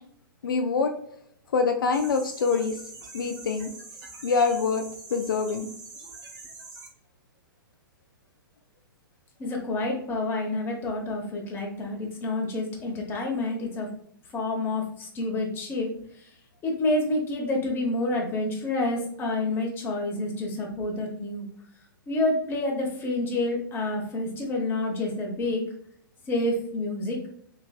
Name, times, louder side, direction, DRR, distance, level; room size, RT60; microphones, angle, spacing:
voice 1, 0.4-0.9 1.5-2.8 3.1-3.7 4.2-4.8 5.1-5.7, left 5 dB, 65° left, 5 dB, 0.4 m, -25 dB
sound 1, 1.9-6.9, right 3 dB, 50° right, 1.2 m, -44 dB
voice 2, 9.4-13.9 14.3-15.9 16.2-16.3 16.6-21.5 22.1-25.6 26.3-27.3, left 2 dB, 20° left, 0 dB, 0.9 m, -28 dB
3.4 x 3.1 x 2.3 m, 0.66 s
figure-of-eight pair, 115°, 12 cm